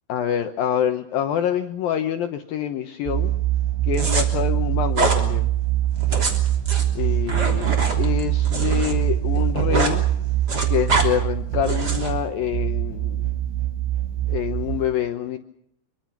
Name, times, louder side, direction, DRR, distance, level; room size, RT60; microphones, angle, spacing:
voice 1, 0.1-3.3 3.9-5.5 6.9-10.0 10.7-13.3 14.3-15.4, left 10 dB, 70° left, 8 dB, 2.3 m, -26 dB
sound 1, 3.1-14.9, right 13 dB, 80° right, 5.1 m, -23 dB
sound 2, 3.9-4.2 4.9-5.2 6.0-8.9 9.2-10.0 10.3-11.1 11.6-12.1, right 2 dB, 25° right, 3.1 m, -25 dB
26.0 x 24.0 x 5.9 m, 0.72 s
omnidirectional pair, 5.3 m